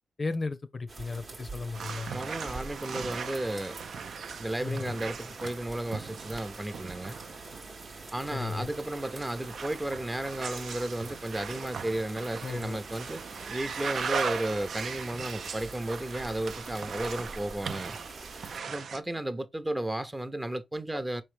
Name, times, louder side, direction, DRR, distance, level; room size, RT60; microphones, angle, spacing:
voice 1, 0.2-2.1 4.6-4.9 8.3-8.7 12.4-12.8 20.9-21.0, left 3 dB, 50° left, 0.5 m, -34 dB
sound 1, 0.9-18.6, right 3 dB, 55° right, 0.9 m, -45 dB
sound 2, 1.7-19.0, right 6 dB, 75° right, 0.3 m, -39 dB
voice 2, 2.1-3.8 4.4-7.2 8.1-18.0 18.7-21.2, right 1 dB, 20° right, 0.6 m, -34 dB
4.4 x 3.1 x 3.2 m
supercardioid pair, 45°, 0 cm